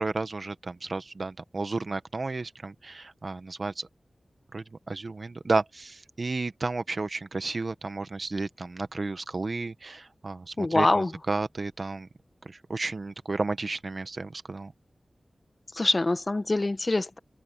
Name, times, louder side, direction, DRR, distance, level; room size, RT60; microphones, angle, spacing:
voice 1, 0.0-3.9 4.5-12.1 12.4-14.7, right 3 dB, 50° right, 1.2 m, -32 dB
voice 2, 10.6-11.1 15.7-17.2, left 2 dB, 35° left, 1.3 m, -24 dB
wide cardioid pair, 80°, 0 cm